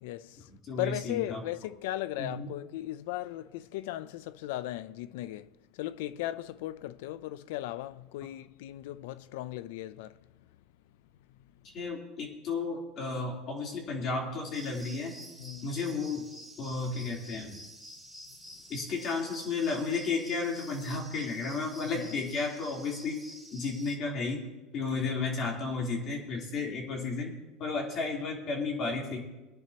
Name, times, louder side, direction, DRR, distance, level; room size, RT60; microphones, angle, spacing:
voice 1, 0.0-0.5 0.8-10.2 15.4-15.7 21.9-22.2 24.8-25.0, left 14 dB, 80° left, 0.5 m, -37 dB
voice 2, 0.7-1.4 2.2-2.5 11.7-15.1 15.6-16.2 16.6-17.6 18.7-23.2 23.5-24.4 24.7-27.3 27.6-29.2, left 4 dB, 45° left, 3.6 m, -33 dB
sound 1, 14.5-24.0, equal, 5° left, 2.1 m, -49 dB
23.0 x 10.0 x 3.0 m
supercardioid pair, 135°, 0 cm